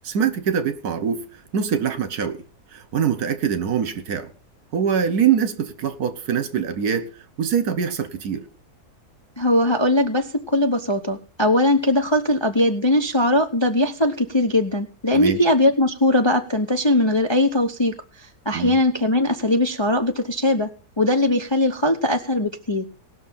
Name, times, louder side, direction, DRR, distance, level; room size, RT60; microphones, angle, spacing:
voice 1, 0.0-1.2 1.5-2.4 2.7-4.3 4.7-7.1 7.4-8.4 15.1-15.4 18.5-18.8, right 7 dB, 70° right, 12 dB, 1.6 m, -23 dB
voice 2, 9.4-17.9 18.4-20.7 21.0-22.9, left 1 dB, 25° left, 5 dB, 0.6 m, -20 dB
18.5 x 6.4 x 5.7 m, 0.36 s
omnidirectional pair, 1.8 m